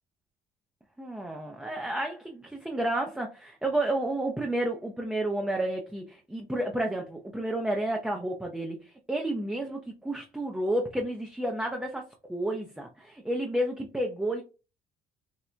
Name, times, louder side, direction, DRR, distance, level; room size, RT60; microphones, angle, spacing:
voice 1, 1.0-14.4, right 1 dB, 5° right, 1 dB, 0.4 m, -31 dB
4.3 x 2.1 x 2.5 m, 0.32 s
cardioid pair, 110°, 17 cm